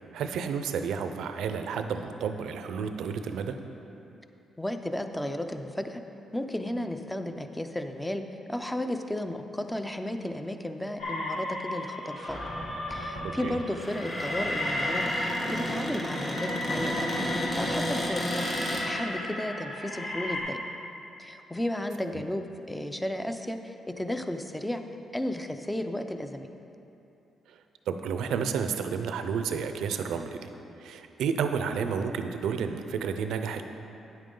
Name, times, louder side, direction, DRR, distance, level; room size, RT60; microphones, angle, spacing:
voice 1, 0.1-3.5 13.4-13.6 22.1-22.2 27.9-30.5 30.8-33.6, right 6 dB, 85° right, 7 dB, 0.5 m, -31 dB
voice 2, 4.6-6.0 6.3-8.2 8.5-12.4 12.9-18.5 18.8-20.6 21.2-24.8 25.1-26.5, left 1 dB, 5° left, 7 dB, 0.5 m, -33 dB
sound 1, 11.0-20.4, left 1 dB, 80° left, 2.0 m, -34 dB
Cupboard open or close, 12.2-18.9, equal, 35° left, 1.7 m, -33 dB
9.3 x 8.8 x 3.8 m, 2.9 s
cardioid pair, 100°, 0 cm